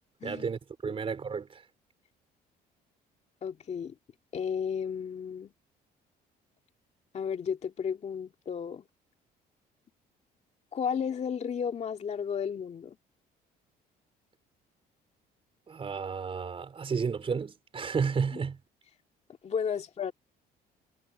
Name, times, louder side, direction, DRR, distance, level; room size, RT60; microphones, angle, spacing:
voice 1, 0.2-1.6 15.7-18.6, right 5 dB, 35° right, 4.7 m, -32 dB
voice 2, 3.4-4.0 4.3-5.5 7.1-8.8 10.7-13.0 18.3-18.4 19.4-20.1, left 7 dB, 40° left, 2.2 m, -33 dB
cardioid pair, 110°, 17 cm